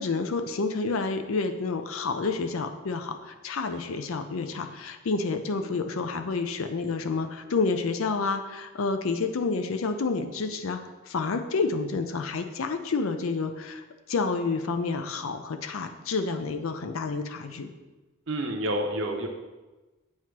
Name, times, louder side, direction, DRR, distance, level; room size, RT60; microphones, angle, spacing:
voice 1, 0.0-10.8 11.1-13.8 14.1-17.7, left 4 dB, 70° left, 7 dB, 0.5 m, -29 dB
voice 2, 18.3-19.3, right 1 dB, 60° right, 4 dB, 0.7 m, -28 dB
7.5 x 2.9 x 4.6 m, 1.1 s
head